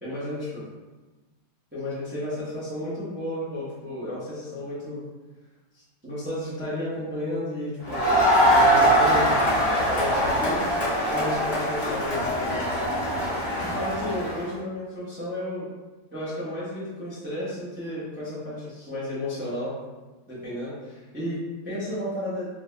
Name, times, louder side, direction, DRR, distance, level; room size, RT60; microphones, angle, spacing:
voice 1, 0.0-0.5 1.7-5.0 5.7-9.4 9.9-10.6 11.1-12.7 13.6-15.7 16.1-19.8 20.3-22.5, left 1 dB, 15° right, -10 dB, 0.4 m, -33 dB
Crowd, 7.8-14.4, equal, 45° left, 1.5 m, -22 dB
3.3 x 2.3 x 3.2 m, 1.2 s
omnidirectional pair, 2.0 m